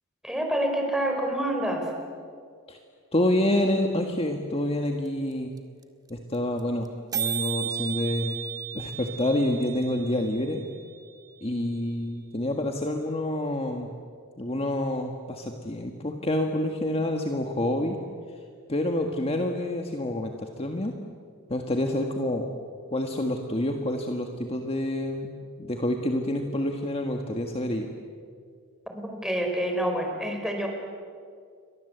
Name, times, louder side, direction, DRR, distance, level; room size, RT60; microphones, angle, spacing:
voice 1, 0.2-1.9 28.9-30.7, right 1 dB, 5° right, 2 dB, 4.7 m, -27 dB
voice 2, 3.1-5.5 6.1-6.9 7.1-8.4 8.7-10.6 11.4-13.9 14.4-18.0 18.7-20.9 21.5-22.5 22.9-25.3 25.6-27.9, left 1 dB, 25° left, 3 dB, 1.7 m, -27 dB
sound 1, 5.1-5.2 5.3-5.4 5.6-5.8 6.1-6.2 6.3-6.6 6.9-7.0 7.1-11.1, right 9 dB, 20° right, 1.8 m, -34 dB
30.0 x 24.0 x 8.1 m, 2.1 s
head